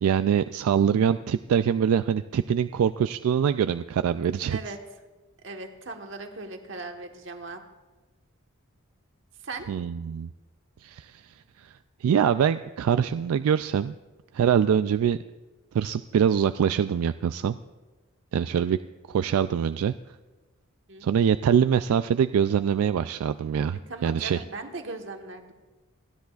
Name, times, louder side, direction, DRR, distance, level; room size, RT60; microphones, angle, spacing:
voice 1, 0.0-4.6 9.7-10.3 10.8-11.2 11.6-11.7 12.0-14.0 14.3-15.2 15.7-17.6 18.3-18.8 19.1-19.9 21.0-24.4, right 8 dB, 85° right, 12 dB, 0.3 m, -24 dB
voice 2, 5.4-7.6 9.4-9.7 17.4-17.5 18.5-18.7 20.9-21.0 23.9-25.5, right 3 dB, 60° right, 4 dB, 1.3 m, -38 dB
29.0 x 10.5 x 2.4 m, 1.2 s
head